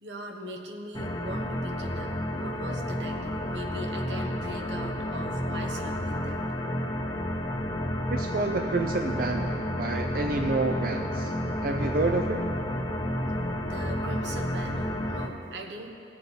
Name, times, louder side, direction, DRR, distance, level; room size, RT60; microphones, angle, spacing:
voice 1, 0.0-6.4 13.6-15.9, right 1 dB, 85° right, 2 dB, 1.2 m, -40 dB
sound 1, 0.9-15.3, left 1 dB, 25° left, 0.9 m, -31 dB
voice 2, 8.1-11.3 11.6-12.4, right 3 dB, 50° right, 4 dB, 0.5 m, -29 dB
18.5 x 7.6 x 4.2 m, 2.8 s
head